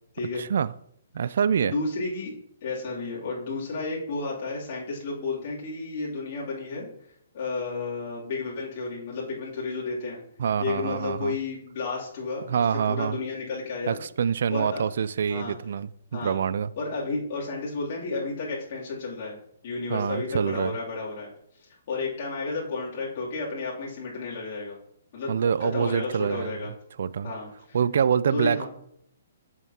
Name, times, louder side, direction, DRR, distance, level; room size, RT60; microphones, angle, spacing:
voice 1, 0.4-0.7 1.1-1.7 10.4-11.3 12.5-13.2 13.9-16.7 19.9-20.7 25.3-26.6 27.0-27.3 27.7-28.7, right 7 dB, 65° right, 0.3 m, -26 dB
voice 2, 1.6-2.3 2.6-6.9 7.3-10.2 10.6-12.5 12.9-14.0 14.5-14.8 15.3-15.6 16.1-16.4 16.8-19.4 19.6-21.3 21.9-24.8 25.1-25.3 25.6-26.7 27.2-27.8 28.3-28.7, left 3 dB, 50° left, 2.8 m, -32 dB
8.0 x 7.2 x 2.8 m
hypercardioid pair, 145°, 0 cm